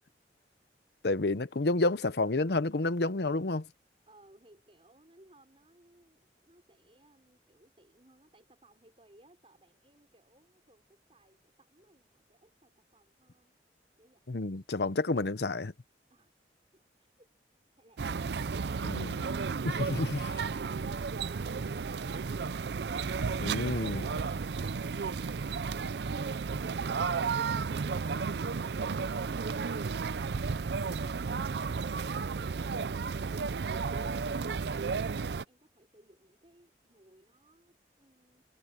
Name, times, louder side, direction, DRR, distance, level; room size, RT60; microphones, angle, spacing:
voice 1, 1.0-3.7 14.3-15.7 18.8-19.2 19.8-20.2 23.4-24.2, left 2 dB, 70° left, 0.8 m, -30 dB
voice 2, 4.1-13.5 14.0-14.7 16.1-16.3 16.7-17.3 34.3-38.4, right 1 dB, 30° right, 5.8 m, -64 dB
sound 1, 18.0-35.4, right 5 dB, 70° right, 0.5 m, -33 dB
head